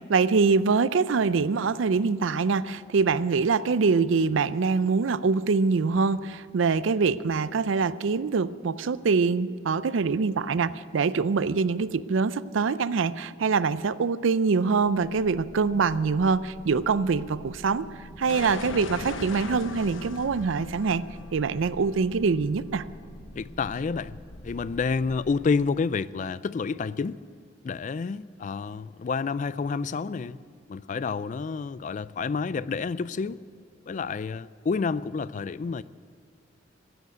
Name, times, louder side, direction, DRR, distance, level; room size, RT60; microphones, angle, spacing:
voice 1, 0.1-17.9 18.2-21.0 21.3-22.8, right 4 dB, 80° right, 0.5 m, -24 dB
sound 1, 14.5-25.3, equal, 70° left, 3.6 m, -46 dB
sound 2, 18.3-23.0, left 3 dB, 90° left, 1.0 m, -40 dB
voice 2, 23.4-24.2 24.4-27.2 27.6-30.4 30.7-33.4 33.9-35.8, left 5 dB, 40° left, 0.3 m, -29 dB
15.5 x 8.0 x 9.3 m
head